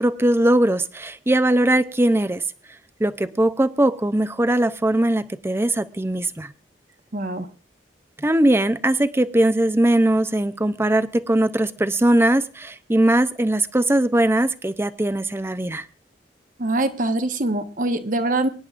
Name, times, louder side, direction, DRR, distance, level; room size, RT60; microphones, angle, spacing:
voice 1, 0.0-2.4 3.0-6.5 8.2-15.9, right 1 dB, 15° right, 0.5 m, -20 dB
voice 2, 7.1-7.5 16.6-18.5, right 2 dB, 50° right, 1.1 m, -23 dB
24.0 x 10.5 x 2.5 m
head